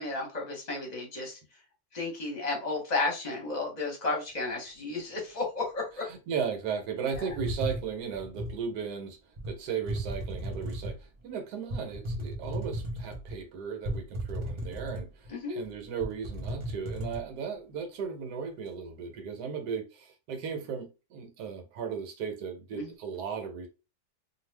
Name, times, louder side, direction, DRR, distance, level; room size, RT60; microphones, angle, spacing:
voice 1, 0.0-1.4 1.9-6.0 15.3-15.6 22.7-22.9, left 3 dB, 30° left, 0.9 m, -33 dB
voice 2, 6.1-9.2 9.4-23.7, right 6 dB, 80° right, 1.3 m, -36 dB
sound 1, 7.1-8.6 9.4-9.5 9.9-11.0 11.7-13.4 13.8-15.3 15.6-15.7 16.0-17.2, right 1 dB, 50° right, 0.3 m, -35 dB
2.6 x 2.3 x 3.2 m
omnidirectional pair, 1.7 m